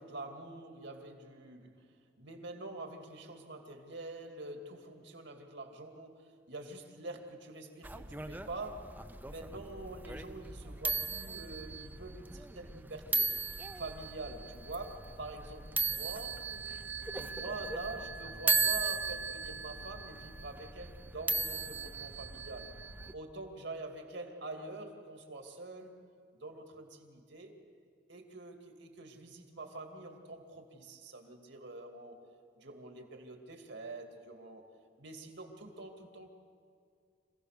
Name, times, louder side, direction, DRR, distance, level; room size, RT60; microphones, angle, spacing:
voice 1, 0.0-1.8 2.2-8.9 9.2-13.3 13.7-16.4 17.2-22.7 23.1-26.0 26.3-27.5 28.1-32.2 32.5-34.6 35.0-36.3, right 2 dB, 65° right, 4 dB, 2.6 m, -45 dB
sound 1, 7.8-23.1, right 3 dB, 10° right, 0.6 m, -37 dB
26.5 x 16.5 x 6.7 m, 2.3 s
head